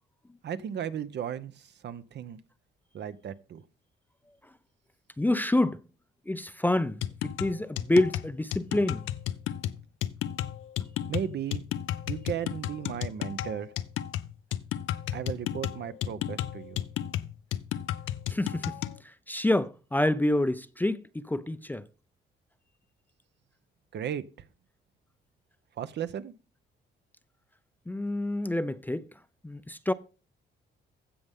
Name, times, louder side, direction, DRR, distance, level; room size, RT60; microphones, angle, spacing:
voice 1, 0.4-2.4 2.9-3.6 11.1-11.6 12.1-13.7 15.1-16.8 23.9-24.2 25.8-26.3, right 9 dB, 60° right, 0.8 m, -35 dB
voice 2, 5.2-5.8 6.3-9.0 18.3-18.8 19.0-21.9 27.9-29.1 29.4-29.9, left 1 dB, 10° left, 0.5 m, -27 dB
sound 1, 7.0-19.0, left 11 dB, 80° left, 0.6 m, -33 dB
15.5 x 5.5 x 3.6 m
cardioid pair, 90°, 20 cm